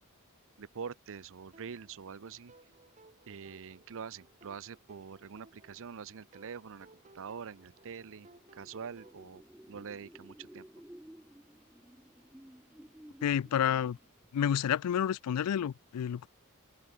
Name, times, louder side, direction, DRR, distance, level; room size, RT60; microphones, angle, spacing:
voice 1, 0.6-2.5 3.3-6.9 7.1-9.4 9.7-10.7, right 6 dB, 60° right, 0.6 m, -45 dB
sound 1, 1.5-9.2, right 2 dB, 35° right, 4.2 m, -61 dB
sound 2, 7.8-14.3, equal, 5° right, 0.5 m, -55 dB
voice 2, 13.2-14.0 14.3-16.3, left 9 dB, 90° left, 0.3 m, -29 dB
open air
head